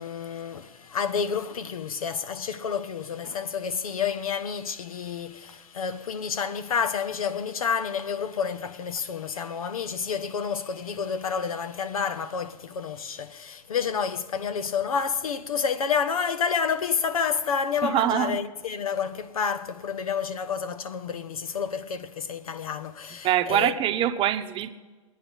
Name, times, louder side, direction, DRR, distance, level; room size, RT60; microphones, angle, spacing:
voice 1, 0.0-23.8, left 6 dB, 85° left, 1.0 m, -29 dB
voice 2, 17.8-18.4 23.2-24.7, right 11 dB, 30° right, 0.9 m, -24 dB
22.0 x 9.7 x 5.4 m
hypercardioid pair, 115°, 18 cm